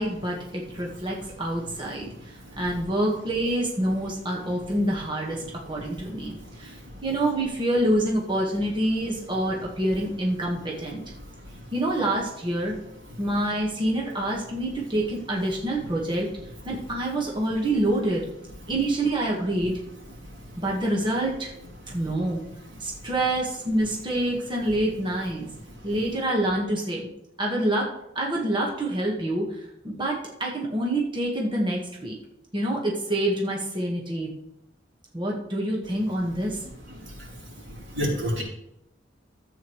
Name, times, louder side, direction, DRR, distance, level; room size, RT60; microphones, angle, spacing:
voice 1, 0.0-2.1 2.6-6.8 7.0-11.0 11.7-12.7 13.2-16.3 16.6-18.3 18.7-19.8 20.6-21.5 21.9-22.4 22.8-25.5 25.8-27.0 27.4-27.9 28.1-32.1 32.5-34.3 35.1-36.6, right 1 dB, 25° right, -2 dB, 1.5 m, -26 dB
voice 2, 37.7-38.4, equal, 90° right, -4 dB, 3.3 m, -29 dB
13.0 x 8.1 x 3.1 m, 0.83 s
head